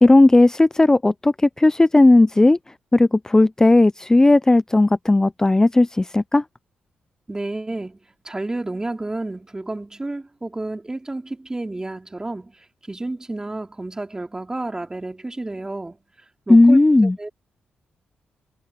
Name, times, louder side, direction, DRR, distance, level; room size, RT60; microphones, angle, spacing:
voice 1, 0.0-2.6 2.9-6.4 16.5-17.2, left 2 dB, 15° left, 0.5 m, -15 dB
voice 2, 7.3-8.0 8.2-16.0 16.5-17.3, right 2 dB, 20° right, 3.3 m, -31 dB
cardioid pair, 70°, 3 cm